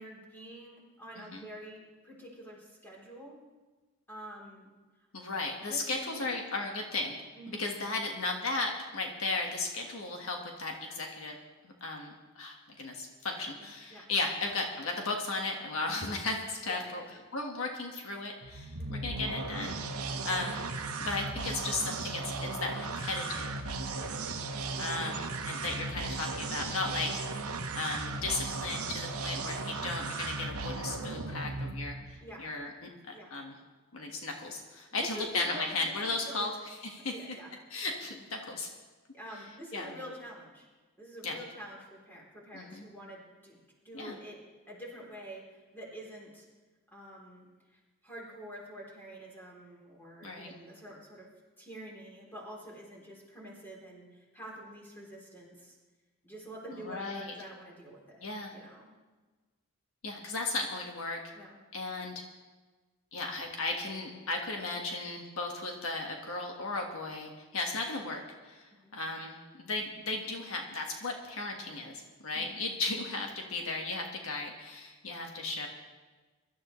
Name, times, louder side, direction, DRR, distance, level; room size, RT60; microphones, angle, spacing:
voice 1, 0.0-3.4 4.1-4.7 5.0-5.1 5.6-6.3 7.4-7.7 13.4-14.1 15.9-16.1 16.7-17.2 18.8-19.1 23.9-24.2 32.2-32.5 33.1-33.4 34.9-36.6 37.0-37.5 39.1-40.7 41.0-43.6 43.8-44.4 44.7-46.5 46.9-51.3 51.6-55.8 56.2-58.3 58.5-58.9 61.3-61.6 68.8-69.0 72.3-72.6, equal, 10° left, -4 dB, 3.4 m, -47 dB
voice 2, 5.1-7.2 7.5-11.4 11.8-17.0 17.3-19.8 20.2-20.7 21.0-23.5 24.8-27.1 27.7-32.9 33.3-33.5 33.9-37.1 37.7-38.7 39.7-39.9 41.2-41.4 42.5-42.8 43.9-44.2 50.2-50.5 56.7-57.3 58.2-58.5 60.0-61.2 61.7-62.2 63.1-75.7, left 3 dB, 70° left, 1 dB, 1.5 m, -35 dB
sound 1, 18.4-32.2, right 3 dB, 80° right, 1.0 m, -36 dB
23.5 x 12.5 x 3.2 m, 1.3 s
head